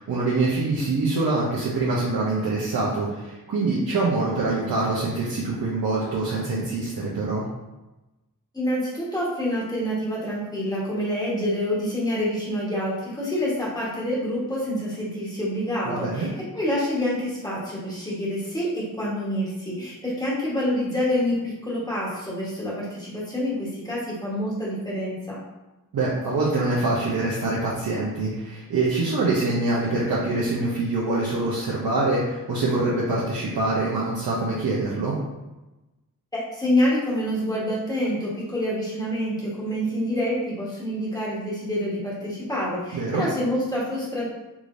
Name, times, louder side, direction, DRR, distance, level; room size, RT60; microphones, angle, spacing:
voice 1, 0.0-7.4 15.8-16.3 25.9-35.1 42.9-43.2, right 2 dB, 80° right, -6 dB, 0.8 m, -25 dB
voice 2, 8.5-25.4 36.3-44.3, left 1 dB, 10° left, -6 dB, 1.2 m, -27 dB
3.7 x 3.2 x 2.6 m, 1.0 s
wide cardioid pair, 110°, 35 cm